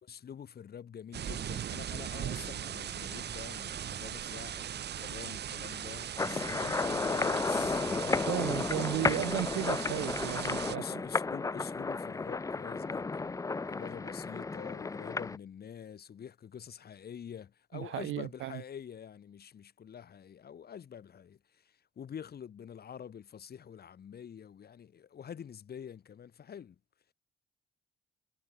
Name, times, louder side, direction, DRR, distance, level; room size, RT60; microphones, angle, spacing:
voice 1, 0.0-7.8 8.4-9.3 10.7-26.8, left 8 dB, 50° left, 2.5 m, -46 dB
sound 1, 1.1-10.8, right 10 dB, 55° right, 1.3 m, -39 dB
sound 2, 6.2-15.4, left 4 dB, 15° left, 0.5 m, -33 dB
voice 2, 8.3-10.8 17.7-18.6, right 15 dB, 80° right, 0.9 m, -34 dB
cardioid pair, 90°, 20 cm